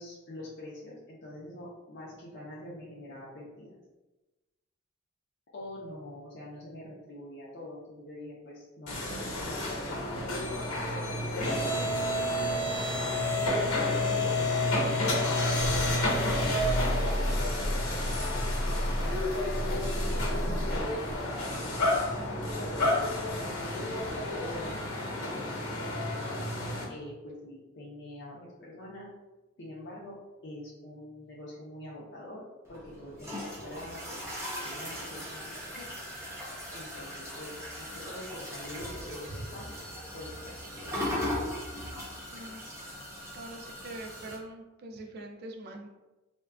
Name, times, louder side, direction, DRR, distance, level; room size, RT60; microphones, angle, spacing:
voice 1, 0.0-3.8 5.5-10.5 10.9-12.5 13.3-19.2 20.1-26.4 26.9-29.1 29.6-30.2 30.4-32.4 32.7-35.9 36.7-39.7 40.1-41.4, left 1 dB, 55° left, -6 dB, 0.5 m, -45 dB
sound 1, 8.9-26.8, left 1 dB, 80° left, 0.9 m, -29 dB
sound 2, 32.6-44.4, left 1 dB, 15° right, 0.7 m, -38 dB
voice 2, 42.3-42.7 43.3-45.9, right 2 dB, 50° right, 3 dB, 0.3 m, -43 dB
3.4 x 2.2 x 2.2 m, 1.1 s
head